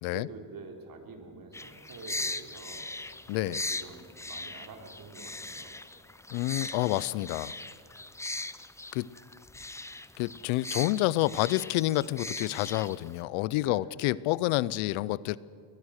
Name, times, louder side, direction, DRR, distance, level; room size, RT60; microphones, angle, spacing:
voice 1, 0.1-2.9 3.4-5.8 13.5-14.0, right 4 dB, 45° right, 4 dB, 3.5 m, -47 dB
sound 1, 1.5-13.2, left 2 dB, 5° left, 0.5 m, -39 dB
voice 2, 3.3-3.6 6.3-7.5 8.9-9.1 10.2-15.4, left 17 dB, 80° left, 21 dB, 0.7 m, -28 dB
21.5 x 20.5 x 6.5 m, 2.4 s
cardioid pair, 105°, 48 cm